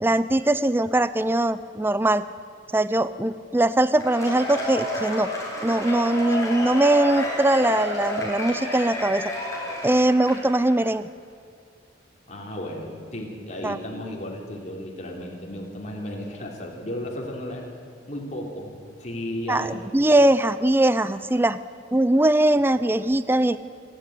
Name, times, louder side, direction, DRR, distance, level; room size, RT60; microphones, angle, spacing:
voice 1, 0.0-2.3 2.7-5.3 5.6-9.3 9.8-11.1 13.6-13.8 19.5-21.6 21.9-23.6, right 1 dB, 10° right, 14 dB, 0.4 m, -21 dB
Cheering / Applause / Crowd, 3.9-10.7, left 1 dB, 15° left, 4.9 m, -30 dB
voice 2, 12.3-17.7 18.1-18.7 19.0-19.8, left 1 dB, 40° left, -1 dB, 3.4 m, -34 dB
27.0 x 11.5 x 9.4 m, 2.2 s
head